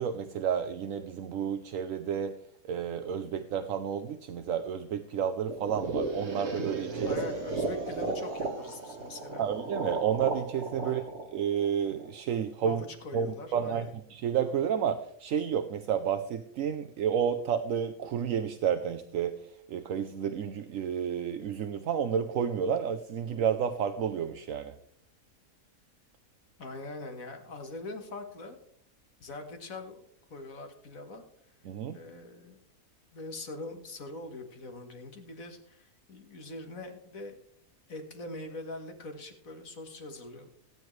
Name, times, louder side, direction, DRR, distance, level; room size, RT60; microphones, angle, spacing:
voice 1, 0.0-2.3 2.6-7.2 9.4-11.0 11.3-12.8 13.1-13.3 13.5-24.7 31.7-32.0, right 8 dB, 70° right, 9 dB, 1.0 m, -31 dB
sound 1, 5.5-12.4, right 3 dB, 50° right, 1.8 m, -35 dB
voice 2, 7.0-9.5 10.8-11.1 12.6-13.9 26.6-28.6 29.2-31.2 31.9-32.6 33.1-37.4 37.9-40.5, left 2 dB, 70° left, 5 dB, 2.0 m, -43 dB
17.5 x 9.6 x 3.2 m, 0.68 s
omnidirectional pair, 1.5 m